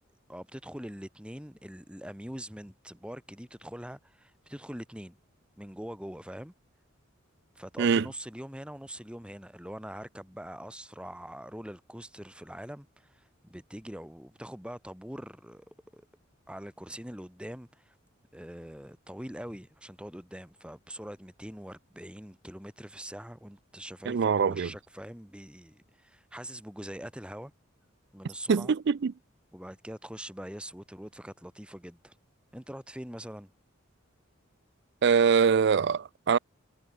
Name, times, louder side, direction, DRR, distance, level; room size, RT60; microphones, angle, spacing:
voice 1, 0.3-5.2 5.6-6.5 7.6-16.0 16.5-17.9 18.3-27.5 28.1-28.7 29.5-32.1 32.5-33.5, equal, 5° right, 3.7 m, -43 dB
voice 2, 24.1-24.7 28.5-29.1 35.0-36.4, right 6 dB, 55° right, 0.4 m, -23 dB
head